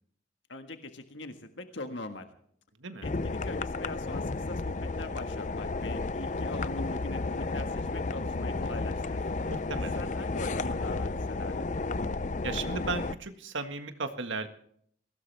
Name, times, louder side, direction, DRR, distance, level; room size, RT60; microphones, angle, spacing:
voice 1, 0.5-2.3 3.0-9.3 9.9-11.7, left 2 dB, 70° left, 6 dB, 1.6 m, -42 dB
sound 1, 3.0-13.2, left 3 dB, 40° left, 0.5 m, -32 dB
voice 2, 9.4-10.0 12.4-14.5, right 4 dB, 75° right, 7 dB, 1.7 m, -35 dB
22.0 x 17.5 x 3.5 m, 0.63 s
head